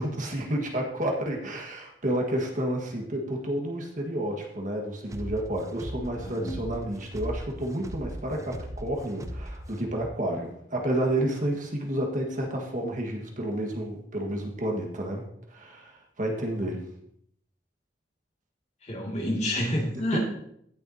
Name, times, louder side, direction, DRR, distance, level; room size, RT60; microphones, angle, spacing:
voice 1, 0.0-15.2 15.5-16.8, right 1 dB, 50° right, 1 dB, 1.6 m, -30 dB
sound 1, 5.1-10.1, equal, 20° right, 0.6 m, -38 dB
voice 2, 6.2-6.7 18.8-20.2, left 1 dB, 40° left, -1 dB, 2.3 m, -29 dB
16.0 x 7.0 x 2.8 m, 0.71 s
head